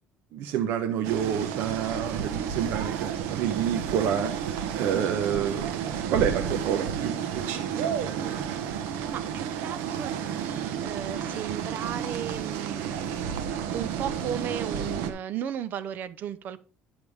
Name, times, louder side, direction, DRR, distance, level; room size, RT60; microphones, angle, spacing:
voice 1, 0.3-4.3 4.8-7.9, right 9 dB, 75° right, 6 dB, 1.0 m, -28 dB
sound 1, 1.0-15.1, right 8 dB, 90° right, 1.3 m, -31 dB
voice 2, 9.1-16.6, right 9 dB, 50° right, 14 dB, 0.8 m, -35 dB
9.9 x 6.9 x 3.6 m, 0.38 s
cardioid pair, 135°, 4 cm